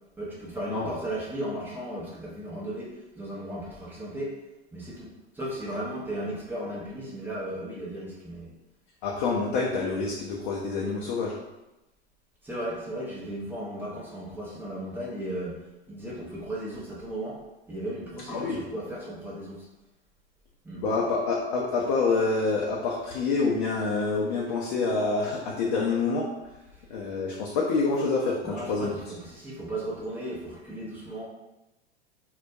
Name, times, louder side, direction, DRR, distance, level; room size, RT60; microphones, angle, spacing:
voice 1, 0.2-4.4 4.7-8.5 12.4-15.6 15.9-17.4 17.7-19.7 20.6-20.8 26.7-26.8 28.4-31.2, right 1 dB, 5° right, -6 dB, 0.5 m, -35 dB
voice 2, 9.0-11.3 18.3-18.6 20.7-26.3 26.9-28.9, left 4 dB, 50° left, -3 dB, 0.5 m, -27 dB
2.2 x 2.1 x 2.6 m, 0.99 s
hypercardioid pair, 95°, 33 cm